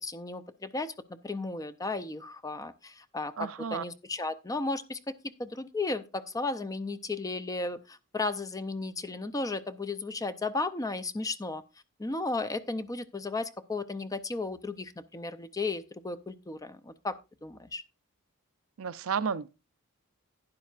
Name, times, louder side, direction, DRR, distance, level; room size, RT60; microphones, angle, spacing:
voice 1, 0.0-5.1 5.4-11.6 12.0-17.8, left 3 dB, 15° left, 0.5 m, -34 dB
voice 2, 3.4-3.8 18.8-19.5, right 6 dB, 70° right, 0.5 m, -32 dB
11.5 x 10.0 x 2.4 m
head